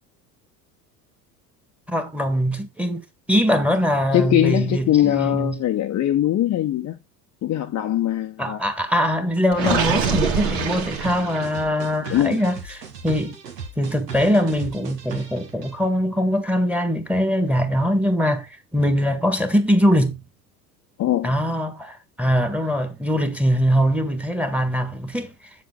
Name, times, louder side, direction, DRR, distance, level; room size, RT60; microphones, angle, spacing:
voice 1, 1.9-3.0 3.3-5.6 8.4-13.4 13.8-20.2 21.2-25.3, equal, 5° right, 1.6 m, -22 dB
voice 2, 4.1-7.0 7.4-8.6 9.6-9.8 12.1-12.4 21.0-21.3, left 12 dB, 35° left, 0.9 m, -21 dB
Gurgling, 9.5-11.7, right 6 dB, 60° right, 2.5 m, -24 dB
sound 1, 10.4-15.7, right 5 dB, 80° right, 1.8 m, -37 dB
7.4 x 6.9 x 3.8 m
figure-of-eight pair, 70°, 48 cm